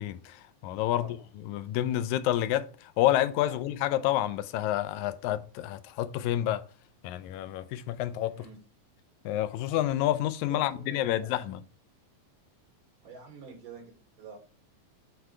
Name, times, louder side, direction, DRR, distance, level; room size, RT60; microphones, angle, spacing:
voice 1, 0.0-1.1 1.4-6.6 7.0-8.4 9.3-11.6, left 13 dB, 80° left, 1.9 m, -29 dB
voice 2, 0.9-1.3 3.5-3.6 8.3-8.6 10.5-11.4 13.0-14.4, right 4 dB, 90° right, 3.8 m, -47 dB
8.1 x 3.2 x 4.5 m
omnidirectional pair, 3.5 m